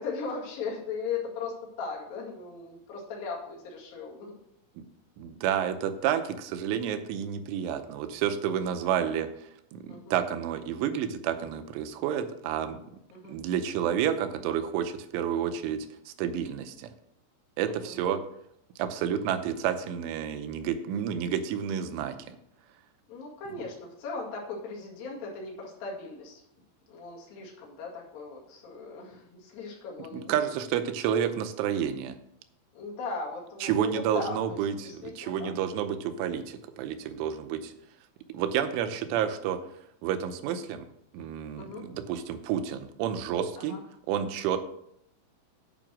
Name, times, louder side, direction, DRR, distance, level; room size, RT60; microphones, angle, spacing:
voice 1, 0.0-4.4 9.9-10.2 13.1-13.3 17.7-18.0 23.1-26.4 26.9-30.3 32.7-35.5 35.8-36.1 41.6-41.8 43.6-43.8, left 4 dB, 55° left, -3 dB, 3.6 m, -38 dB
voice 2, 5.2-9.3 9.7-12.8 13.3-16.9 17.6-18.2 18.8-22.4 30.1-32.1 33.6-37.7 38.3-39.6 40.0-40.9 41.1-43.8 44.1-44.6, right 9 dB, 85° right, 9 dB, 3.1 m, -30 dB
9.1 x 5.8 x 6.2 m, 0.74 s
omnidirectional pair, 5.6 m